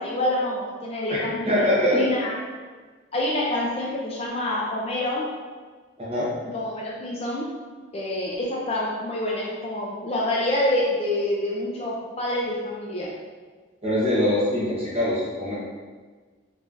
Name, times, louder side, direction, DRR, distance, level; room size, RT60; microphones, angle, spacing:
voice 1, 0.0-2.4 3.1-5.3 6.5-7.5 7.9-13.1, left 1 dB, 30° left, -4 dB, 0.4 m, -27 dB
voice 2, 1.1-2.0 6.0-6.3 13.8-15.5, left 1 dB, 30° right, -9 dB, 1.1 m, -23 dB
3.4 x 3.1 x 2.6 m, 1.4 s
head